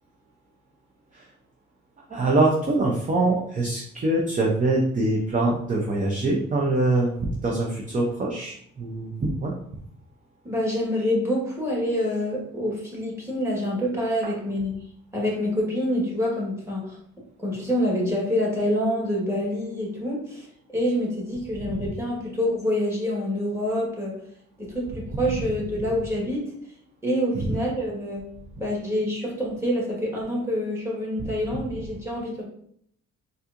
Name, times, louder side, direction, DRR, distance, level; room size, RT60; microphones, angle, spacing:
voice 1, 2.1-9.5 27.5-27.6, right 2 dB, 25° right, -1 dB, 0.6 m, -24 dB
voice 2, 10.4-14.8 15.1-17.0 17.4-20.5 20.7-24.2 24.6-26.5 27.0-28.2 28.6-32.4, equal, 10° right, -4 dB, 1.5 m, -26 dB
4.2 x 2.5 x 2.5 m, 0.66 s
cardioid pair, 90°, 30 cm